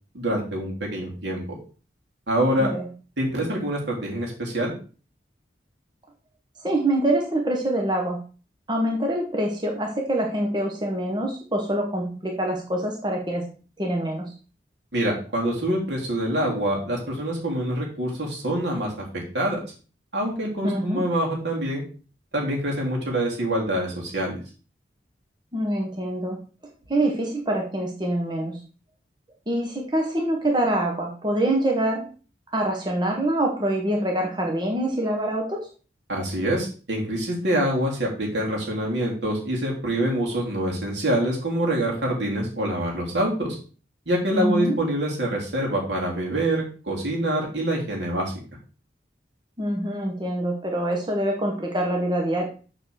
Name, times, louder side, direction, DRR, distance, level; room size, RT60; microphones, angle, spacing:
voice 1, 0.1-1.4 2.3-2.7 3.2-4.7 14.9-19.6 20.1-21.8 22.3-24.4 36.1-43.6 44.0-48.3, right 1 dB, 80° right, -1 dB, 3.4 m, -25 dB
voice 2, 6.6-8.2 8.7-13.4 13.8-14.3 20.6-21.0 25.5-26.4 26.9-28.6 29.5-32.1 32.5-35.7 44.3-44.8 49.6-52.4, right 1 dB, 25° right, 1 dB, 1.4 m, -25 dB
7.3 x 4.8 x 6.5 m, 0.37 s
head